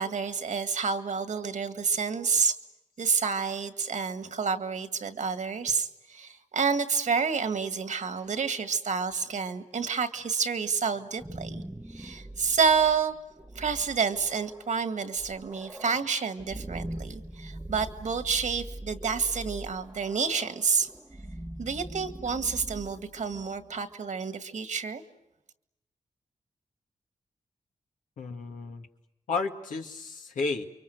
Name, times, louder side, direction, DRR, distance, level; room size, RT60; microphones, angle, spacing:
voice 1, 0.0-2.6 3.0-11.6 11.9-13.1 13.5-20.9 21.6-25.0, right 5 dB, 70° right, 8 dB, 2.0 m, -29 dB
sound 1, 10.9-23.8, right 1 dB, 10° right, 0.9 m, -42 dB
voice 2, 28.2-28.9 29.3-30.6, left 4 dB, 85° left, 3 dB, 2.1 m, -32 dB
29.0 x 24.0 x 8.0 m, 0.92 s
cardioid pair, 50°, 13 cm